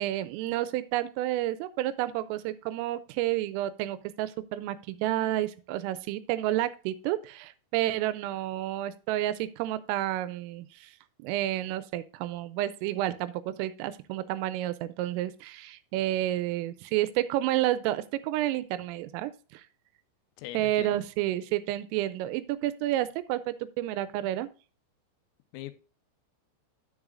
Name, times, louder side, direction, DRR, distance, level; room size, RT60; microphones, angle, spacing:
voice 1, 0.0-19.6 20.5-24.5, right 14 dB, 85° right, 3.1 m, -30 dB
voice 2, 20.4-21.0 25.5-25.7, left 15 dB, 85° left, 3.4 m, -41 dB
9.6 x 8.9 x 2.5 m
omnidirectional pair, 5.9 m